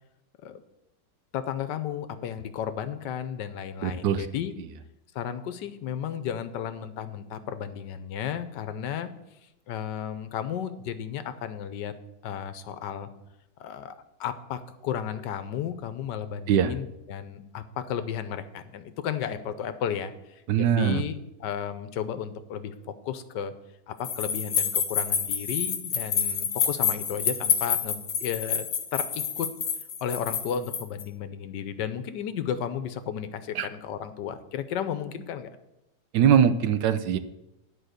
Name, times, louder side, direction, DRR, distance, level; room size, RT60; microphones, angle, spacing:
voice 1, 1.3-4.5 5.1-9.1 9.7-11.9 12.2-13.1 13.6-13.9 14.2-20.1 20.6-22.7 23.0-23.5 23.9-29.5 30.0-35.5, left 8 dB, 80° left, 11 dB, 1.4 m, -33 dB
voice 2, 3.8-4.3 16.5-16.7 20.5-21.0 33.5-33.7 36.1-37.2, right 8 dB, 80° right, 12 dB, 1.3 m, -22 dB
sound 1, 24.0-31.0, left 7 dB, 65° left, 1.5 m, -28 dB
11.5 x 4.8 x 6.5 m, 0.89 s
omnidirectional pair, 1.9 m